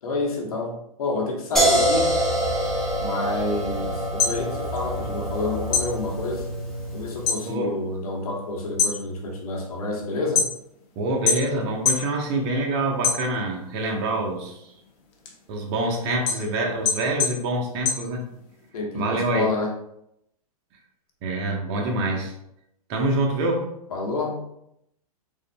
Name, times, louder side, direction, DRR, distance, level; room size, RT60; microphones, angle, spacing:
voice 1, 0.0-2.1 3.0-6.5 6.9-10.5 18.7-19.7 23.9-24.5, left 2 dB, 70° left, 0 dB, 1.1 m, -29 dB
sound 1, 1.6-7.4, equal, ahead, 1.0 m, -25 dB
sound 2, 4.2-5.4 5.7-7.5 7.8-8.3 8.6-10.8 11.3-12.1 12.5-13.7 14.1-18.7, left 6 dB, 40° left, 0.9 m, -26 dB
voice 2, 11.0-14.7 15.5-18.2 18.9-19.4 21.2-22.3 22.9-23.7, right 2 dB, 40° right, 1 dB, 0.9 m, -26 dB
3.9 x 3.6 x 2.2 m, 0.79 s
hypercardioid pair, 125°, 19 cm